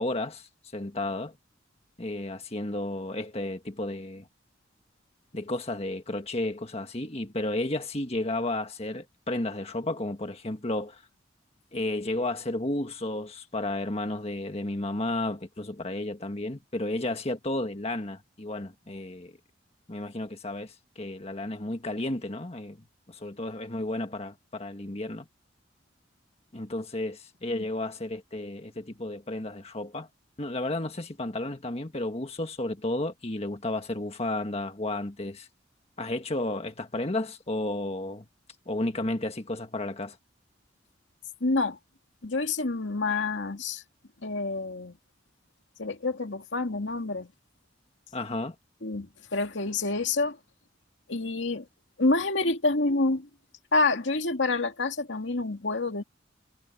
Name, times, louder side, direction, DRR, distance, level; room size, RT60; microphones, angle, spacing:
voice 1, 0.0-1.4 2.0-4.3 5.3-11.0 11.7-19.4 19.9-22.8 23.1-25.3 26.5-30.1 30.4-35.5 36.0-38.3 38.7-40.2 48.1-48.6, left 2 dB, 30° left, 1.6 m, -32 dB
voice 2, 41.4-41.8 42.2-43.8 44.2-45.0 45.8-47.3 48.8-50.4 51.1-51.7 52.0-53.3 53.7-56.0, left 3 dB, 70° left, 2.3 m, -27 dB
head